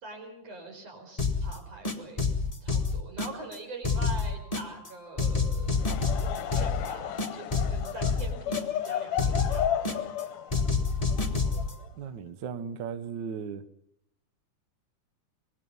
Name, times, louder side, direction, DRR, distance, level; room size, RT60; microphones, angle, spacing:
voice 1, 0.0-2.2 2.6-10.1, right 2 dB, 50° right, 4 dB, 5.7 m, -44 dB
sound 1, 1.2-1.5 1.8-3.6 3.8-4.9 5.2-6.9 7.2-8.9 9.2-10.2 10.5-11.7, left 4 dB, 20° left, 1.1 m, -28 dB
Laughter / Crowd, 5.7-12.1, left 10 dB, 70° left, 2.0 m, -34 dB
voice 2, 12.0-13.6, right 6 dB, 85° right, 13 dB, 0.9 m, -36 dB
25.0 x 20.5 x 5.5 m, 0.74 s
omnidirectional pair, 3.6 m